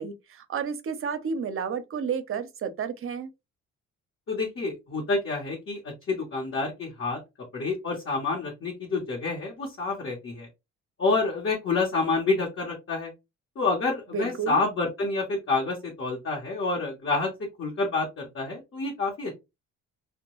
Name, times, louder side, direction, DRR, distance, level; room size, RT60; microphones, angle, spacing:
voice 1, 0.0-3.3 14.1-14.6, right 6 dB, 45° right, 0.6 m, -31 dB
voice 2, 4.3-7.2 7.5-10.5 11.0-13.1 13.6-19.4, left 3 dB, 45° left, 1.0 m, -28 dB
2.2 x 2.2 x 2.9 m
cardioid pair, 90°, 30 cm